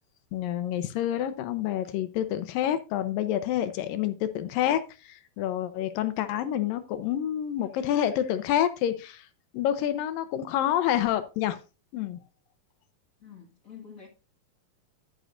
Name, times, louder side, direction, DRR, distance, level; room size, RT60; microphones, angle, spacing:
voice 1, 0.3-9.3 9.5-11.6 11.9-12.2, left 11 dB, 80° left, 2.3 m, -28 dB
voice 2, 13.2-14.1, left 7 dB, 35° left, 1.3 m, -47 dB
11.0 x 9.4 x 2.5 m
omnidirectional pair, 4.3 m